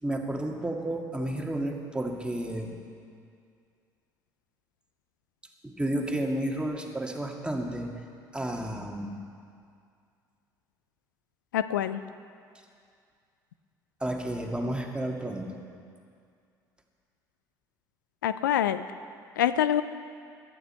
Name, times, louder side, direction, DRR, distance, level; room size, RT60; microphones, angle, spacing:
voice 1, 0.0-2.8 5.6-7.9 8.3-9.1 14.0-15.6, right 1 dB, 10° right, 1 dB, 2.1 m, -31 dB
voice 2, 11.5-12.0 18.2-18.8 19.4-19.8, left 10 dB, 85° left, 13 dB, 0.4 m, -25 dB
17.5 x 12.0 x 4.5 m, 2.3 s
hypercardioid pair, 60°, 10 cm